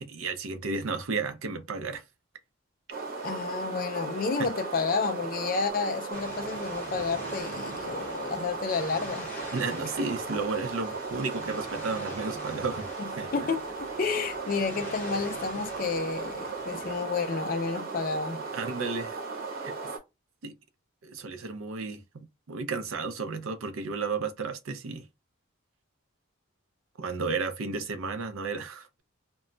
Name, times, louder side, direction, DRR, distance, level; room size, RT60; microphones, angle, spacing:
voice 1, 0.0-2.0 4.4-4.5 9.5-12.9 13.2-13.5 18.5-19.2 19.6-19.8 20.4-20.5 21.0-25.1 27.0-29.0, right 4 dB, 75° right, 0.5 m, -33 dB
sound 1, 2.9-20.0, right 4 dB, 45° right, 0.8 m, -37 dB
voice 2, 3.2-9.3 13.0-18.4, left 4 dB, 40° left, 0.4 m, -31 dB
sound 2, 6.1-17.0, equal, 10° left, 0.9 m, -44 dB
2.2 x 2.0 x 3.7 m
head